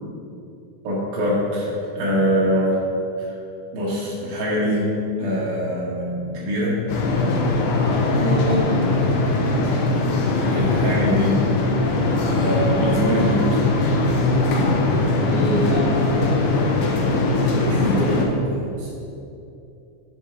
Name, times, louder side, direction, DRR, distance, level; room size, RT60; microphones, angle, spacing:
voice 1, 0.8-1.7 2.0-2.8 3.2-3.3 3.7-4.9 5.2-6.8 10.5-11.4 12.3-13.6 17.7-18.2, equal, 55° right, -6 dB, 3.3 m, -23 dB
sound 1, 6.9-18.3, left 2 dB, 85° left, 2.1 m, -20 dB
voice 2, 8.1-8.9 14.5-14.6 15.2-16.0 17.6-18.9, right 2 dB, 75° right, -4 dB, 2.4 m, -27 dB
12.0 x 6.7 x 3.4 m, 2.8 s
omnidirectional pair, 5.6 m